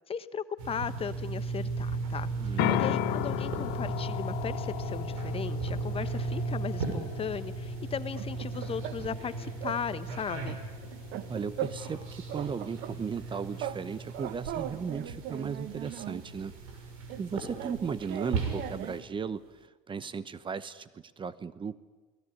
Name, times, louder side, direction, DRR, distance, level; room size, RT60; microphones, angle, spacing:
voice 1, 0.1-10.6, left 7 dB, 35° left, 13 dB, 1.2 m, -37 dB
sound 1, 0.6-19.0, right 4 dB, 80° right, 6.2 m, -37 dB
voice 2, 2.4-3.0 11.3-16.5 17.2-19.4 19.9-21.8, right 6 dB, 30° right, 16 dB, 1.0 m, -36 dB
sound 2, 2.6-14.3, left 18 dB, 65° left, 0.8 m, -37 dB
sound 3, 7.9-9.3 9.6-9.8 10.1-12.0 12.3-13.8 14.1-16.3 17.1-19.1, right 11 dB, 65° right, 1.3 m, -40 dB
28.0 x 18.5 x 9.6 m, 1.3 s
supercardioid pair, 85°, 17 cm